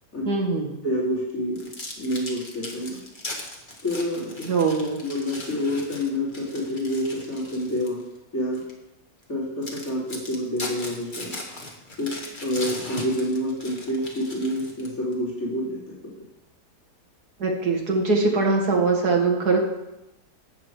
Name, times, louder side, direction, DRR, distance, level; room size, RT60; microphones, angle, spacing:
voice 1, 0.3-0.7 4.5-5.0 17.4-19.6, right 3 dB, 70° right, 0 dB, 2.5 m, -22 dB
voice 2, 0.8-1.7 2.0-3.0 3.8-4.4 5.0-8.0 8.3-8.6 9.3-11.4 12.0-12.1 12.4-15.8, left 1 dB, 55° left, -7 dB, 4.1 m, -28 dB
sound 1, 1.6-8.0 8.5-8.7 9.2-9.3 9.6-15.1, left 2 dB, 30° left, 1.9 m, -38 dB
13.0 x 8.7 x 4.9 m, 0.92 s
omnidirectional pair, 1.8 m